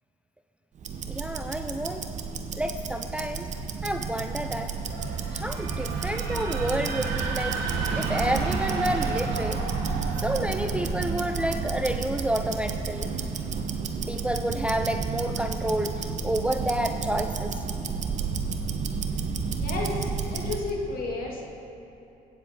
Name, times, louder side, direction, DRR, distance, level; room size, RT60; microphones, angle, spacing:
Tick-tock, 0.8-20.7, right 5 dB, 50° right, 0.9 m, -31 dB
voice 1, 1.1-2.0 2.6-3.5 3.8-4.7 5.3-7.6 7.9-9.6 10.2-13.1 14.1-17.6, right 1 dB, 5° right, 6 dB, 0.4 m, -29 dB
sound 1, 3.6-13.5, right 3 dB, 80° right, 1.4 m, -35 dB
voice 2, 19.6-21.4, left 2 dB, 60° left, -2 dB, 2.2 m, -32 dB
17.0 x 7.4 x 3.7 m, 2.8 s
supercardioid pair, 80°, 16 cm